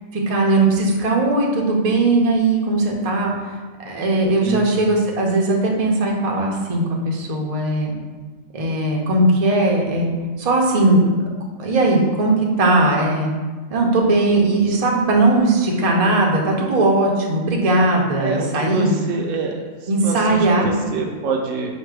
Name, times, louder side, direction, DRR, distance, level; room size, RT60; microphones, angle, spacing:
voice 1, 0.1-3.6 3.9-7.9 8.5-10.1 10.4-13.3 13.7-19.0 19.9-20.8, right 2 dB, 40° right, -1 dB, 0.5 m, -18 dB
voice 2, 4.4-4.9 18.2-19.7 20.0-21.7, right 4 dB, 70° right, 2 dB, 0.9 m, -26 dB
5.2 x 2.2 x 4.7 m, 1.4 s
omnidirectional pair, 1.4 m